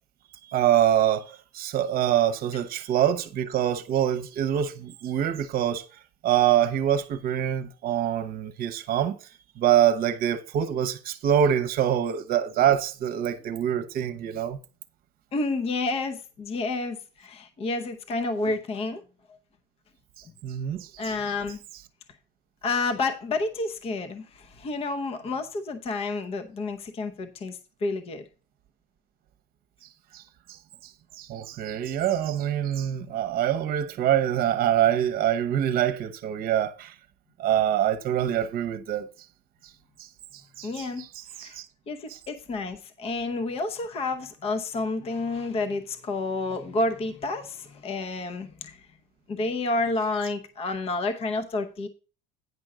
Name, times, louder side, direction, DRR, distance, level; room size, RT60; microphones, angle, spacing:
voice 1, 0.4-5.9 6.2-9.2 9.6-14.6 20.4-20.9 30.1-30.2 30.5-30.6 31.2-36.9 37.4-39.1 40.6-41.6 42.1-42.2, right 10 dB, 45° right, 1.0 m, -25 dB
voice 2, 15.3-19.0 21.0-21.6 22.6-28.2 40.6-41.0 41.4-41.6 41.9-48.9 49.3-51.9, left 3 dB, 30° left, 0.8 m, -30 dB
9.8 x 5.3 x 4.9 m
cardioid pair, 145°, 20 cm